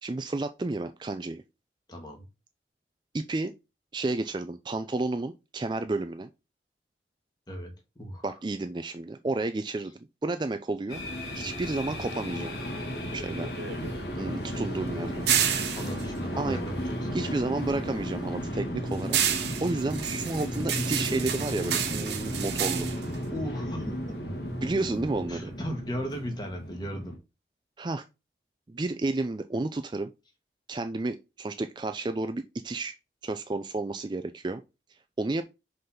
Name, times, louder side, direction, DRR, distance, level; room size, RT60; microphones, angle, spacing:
voice 1, 0.0-1.4 3.1-3.5 3.9-6.3 8.2-9.9 10.2-12.5 13.1-13.5 14.2-15.2 16.4-16.6 17.1-19.2 19.6-22.9 24.6-25.5 27.8-28.0 28.7-30.1 30.7-33.0 33.2-34.6 35.2-35.4, right 2 dB, 25° right, 0.4 m, -31 dB
voice 2, 1.9-2.2 7.5-8.4 15.0-15.3 15.7-17.1 23.2-24.2 25.3-27.2, equal, 25° left, 1.7 m, -36 dB
sound 1, 10.9-27.2, equal, 70° left, 1.9 m, -34 dB
sound 2, 12.9-17.4 17.7-24.2, right 9 dB, 75° right, 1.0 m, -31 dB
5.4 x 3.9 x 5.7 m
head